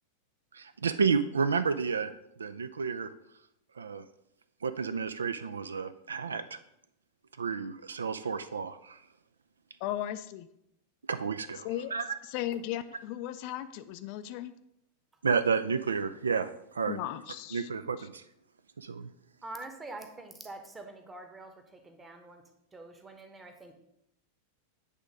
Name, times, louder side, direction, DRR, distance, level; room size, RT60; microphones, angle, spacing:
voice 1, 0.5-2.1 2.4-3.1 3.8-4.0 4.6-6.6 7.4-9.0 11.1-12.1 15.2-17.0 17.5-18.2 18.8-19.1, right 5 dB, 70° right, 13 dB, 0.3 m, -31 dB
voice 2, 9.8-10.5 11.6-11.9 12.2-14.5 16.9-17.7 18.0-18.1, left 12 dB, 45° left, 11 dB, 0.3 m, -36 dB
voice 3, 19.4-22.4 22.7-23.7, right 2 dB, 15° right, 6 dB, 1.0 m, -45 dB
8.2 x 3.5 x 5.0 m, 0.79 s
figure-of-eight pair, 90°, 0 cm